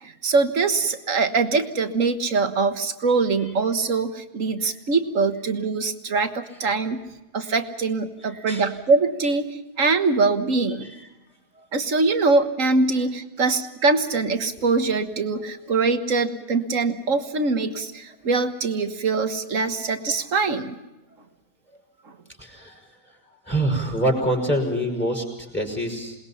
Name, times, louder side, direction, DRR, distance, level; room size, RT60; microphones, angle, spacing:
voice 1, 0.0-7.0 7.3-10.9 11.7-20.8 22.1-22.2, right 4 dB, 60° right, 8 dB, 1.8 m, -23 dB
voice 2, 8.2-8.7 10.8-11.0 11.5-11.7 22.4-23.2 23.5-26.2, right 1 dB, 5° left, 2 dB, 5.7 m, -26 dB
27.5 x 20.5 x 5.7 m, 1.0 s
omnidirectional pair, 1.6 m